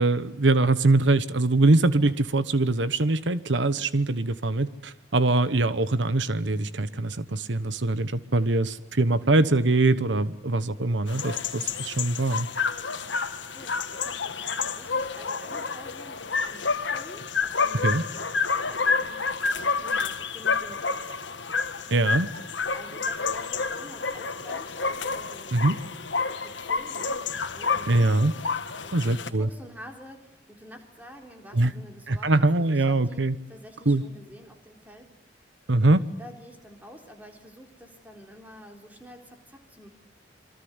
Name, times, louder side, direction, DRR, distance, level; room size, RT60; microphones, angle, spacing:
voice 1, 0.0-12.5 17.8-18.0 21.9-22.3 25.5-25.8 27.9-28.3 28.9-29.5 31.5-31.7 32.1-33.3 33.9-34.0 35.7-36.0, right 2 dB, 80° right, 14 dB, 1.1 m, -23 dB
sound 1, 11.1-29.3, left 5 dB, 85° left, 1.8 m, -29 dB
voice 2, 13.2-21.2 22.7-25.8 26.4-33.2 33.5-35.1 36.2-39.9, equal, 10° right, 3 dB, 3.8 m, -48 dB
28.0 x 23.5 x 8.1 m, 0.77 s
head